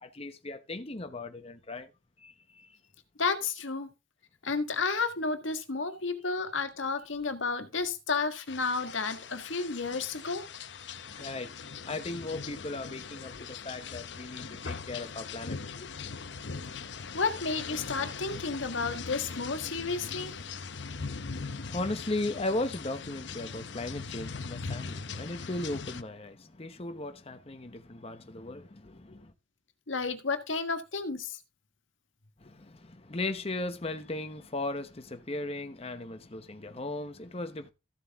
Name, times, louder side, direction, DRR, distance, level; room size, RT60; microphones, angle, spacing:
voice 1, 0.0-1.9 2.2-2.8 10.0-10.1 10.7-15.9 21.3-29.3 32.4-37.7, left 2 dB, 30° left, 0.9 m, -37 dB
voice 2, 3.2-3.9 4.4-10.5 17.1-20.4 29.9-31.4, left 4 dB, 85° left, 1.6 m, -32 dB
sound 1, 8.5-26.0, left 5 dB, 65° left, 0.8 m, -40 dB
14.5 x 7.6 x 3.5 m
head